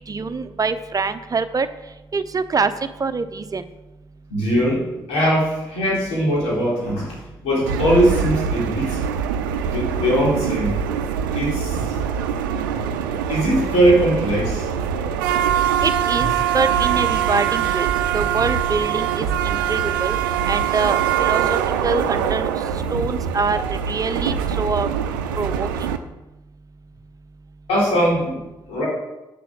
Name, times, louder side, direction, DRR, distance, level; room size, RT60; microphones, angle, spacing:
voice 1, 0.1-1.7 2.1-2.7 3.0-3.6 15.8-17.9 18.1-20.2 20.5-21.4 21.8-22.5 22.9-24.9 25.4-25.9, right 4 dB, 35° right, 11 dB, 0.8 m, -24 dB
voice 2, 4.3-9.0 9.7-10.8 11.3-12.0 13.3-14.7 27.7-28.4 28.7-28.9, equal, 75° left, -4 dB, 3.8 m, -20 dB
sound 1, 7.7-26.0, right 8 dB, 85° right, 0.5 m, -23 dB
8.5 x 6.8 x 6.3 m, 1.0 s
hypercardioid pair, 45°, 11 cm